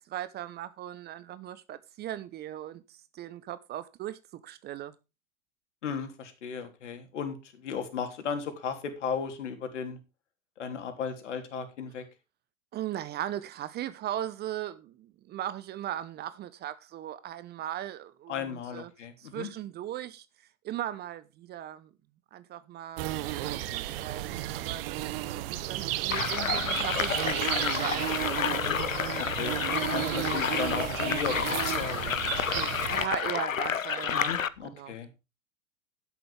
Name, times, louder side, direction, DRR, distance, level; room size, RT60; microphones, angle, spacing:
voice 1, 0.0-4.9 12.7-18.9 19.2-20.3 20.6-21.9 22.3-28.1 32.9-34.3 34.6-34.9, right 12 dB, 25° right, 0.9 m, -38 dB
voice 2, 5.8-10.0 10.6-12.0 18.3-19.5 28.5-28.8 29.2-32.2 34.1-35.2, left 6 dB, 65° left, 3.5 m, -36 dB
sound 1, 23.0-33.1, right 15 dB, 45° right, 1.2 m, -33 dB
sound 2, 26.1-34.5, left 8 dB, 80° left, 1.0 m, -30 dB
12.0 x 11.0 x 3.5 m
figure-of-eight pair, 100°, 39 cm